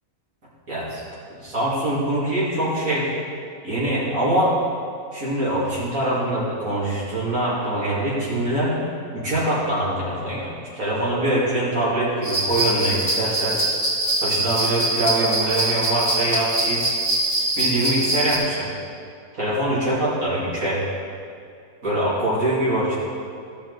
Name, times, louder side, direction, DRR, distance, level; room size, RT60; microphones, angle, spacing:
voice 1, 0.7-1.0 1.4-3.1 3.6-4.5 5.1-8.8 9.1-10.5 10.7-13.6 14.2-17.0 17.6-18.6 19.3-20.8 21.8-23.0, right 1 dB, 60° right, -8 dB, 2.9 m, -23 dB
sound 1, 12.2-18.4, right 1 dB, 25° right, 2.3 m, -23 dB
15.0 x 6.4 x 4.0 m, 2.3 s
omnidirectional pair, 1.6 m